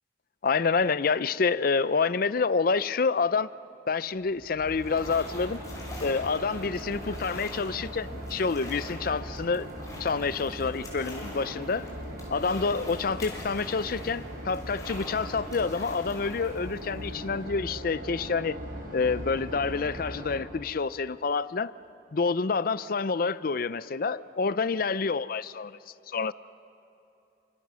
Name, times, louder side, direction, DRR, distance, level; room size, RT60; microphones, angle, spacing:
voice 1, 0.4-3.5 3.9-5.6 6.0-9.7 10.0-11.9 12.3-18.6 18.9-21.7 22.1-25.8 26.1-26.3, left 4 dB, 50° left, 16 dB, 0.5 m, -28 dB
sound 1, 4.1-17.8, left 1 dB, 20° left, 5.9 m, -45 dB
sound 2, 4.6-20.4, equal, 50° right, 4.5 m, -40 dB
30.0 x 26.5 x 6.3 m, 2.8 s
head